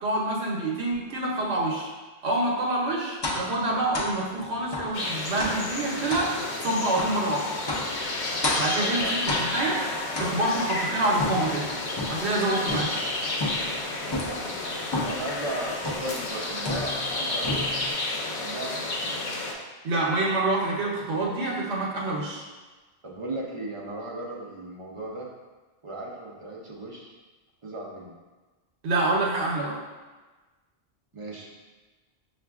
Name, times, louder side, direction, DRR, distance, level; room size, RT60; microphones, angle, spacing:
voice 1, 0.0-1.9 2.2-6.3 6.6-7.5 8.6-9.8 10.2-11.7 12.1-12.9 19.8-22.4 28.8-29.8, right 2 dB, 75° right, -3 dB, 0.9 m, -27 dB
sound 1, 3.2-3.5 3.9-4.2 4.7-4.9 5.4-5.7 6.1-6.3 7.0-7.2 7.7-8.0 8.4-8.8 9.3-9.7 10.1-10.7 11.2-12.3 12.7-13.1 13.4-13.8 14.1-14.4 14.9-15.3 15.8-16.2 16.6-17.1 17.4-17.9, left 2 dB, 40° left, 0.4 m, -31 dB
sound 2, 4.9-19.5, left 2 dB, 85° left, 0.9 m, -31 dB
voice 2, 8.7-9.1 10.1-10.4 14.0-17.8 18.3-19.2 23.0-25.3 25.8-27.1 27.6-28.1 31.1-31.5, right 1 dB, 50° right, -3 dB, 0.4 m, -36 dB
5.7 x 2.4 x 2.3 m, 1.3 s
omnidirectional pair, 1.1 m